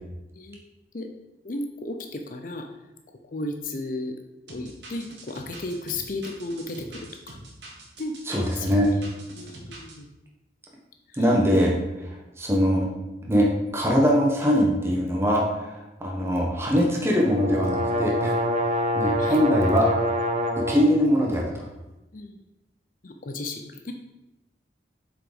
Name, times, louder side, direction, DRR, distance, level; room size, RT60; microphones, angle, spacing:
voice 1, 1.4-2.7 3.3-4.2 4.5-7.4 8.0-9.1 9.3-10.1 11.1-11.3 19.2-19.4 22.1-22.4 23.0-23.9, left 2 dB, 50° left, 5 dB, 0.6 m, -34 dB
sound 1, 4.5-10.0, right 2 dB, 75° right, 1.7 m, -44 dB
voice 2, 8.3-8.9 11.2-11.7 12.0-12.9 13.3-13.5 13.7-18.4 18.9-19.9 20.6-21.7, equal, 15° right, -2 dB, 1.2 m, -22 dB
sound 2, 17.0-20.9, equal, 40° right, 0.8 m, -26 dB
7.3 x 4.9 x 5.0 m, 0.99 s
head